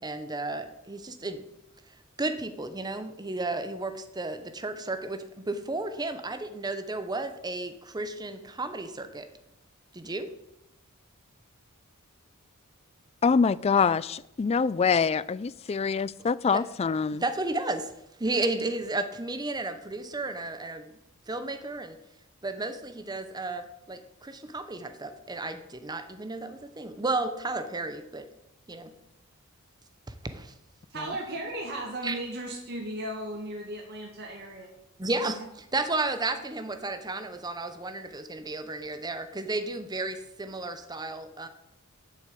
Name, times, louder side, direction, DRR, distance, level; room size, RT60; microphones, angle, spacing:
voice 1, 0.0-1.4 2.2-9.3 9.9-10.3 16.5-16.6 17.2-17.9 18.2-20.9 21.3-22.0 22.4-28.3 28.7-28.9 30.1-30.5 32.0-32.1 35.0-41.5, right 2 dB, 20° right, 9 dB, 0.9 m, -33 dB
voice 2, 13.2-17.2, left 5 dB, 30° left, 19 dB, 0.3 m, -25 dB
voice 3, 30.9-34.8, right 1 dB, 45° right, -1 dB, 2.0 m, -36 dB
8.3 x 6.5 x 8.4 m, 0.83 s
head